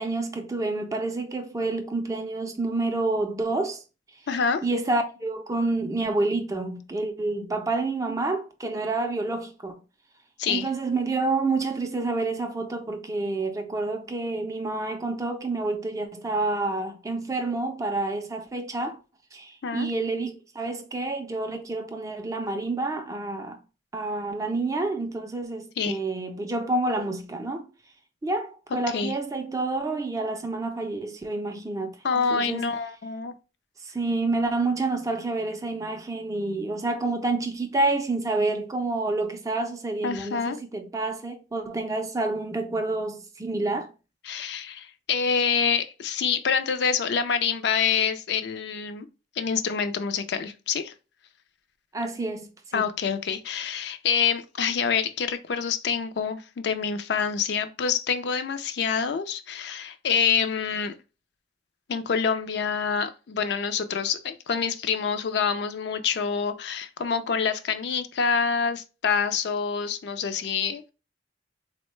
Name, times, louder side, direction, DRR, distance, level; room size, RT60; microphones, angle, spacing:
voice 1, 0.0-3.8 4.6-9.8 10.5-19.0 19.3-23.6 23.9-27.7 28.2-32.7 33.8-43.9 51.9-52.9, right 2 dB, 20° right, 0.3 m, -28 dB
voice 2, 4.3-4.6 10.4-10.7 19.6-19.9 25.8-26.0 28.9-29.1 32.0-33.3 40.0-40.6 44.2-49.1 49.4-50.9 52.7-60.9 61.9-70.9, left 6 dB, 60° left, 0.4 m, -26 dB
3.6 x 2.1 x 3.1 m
head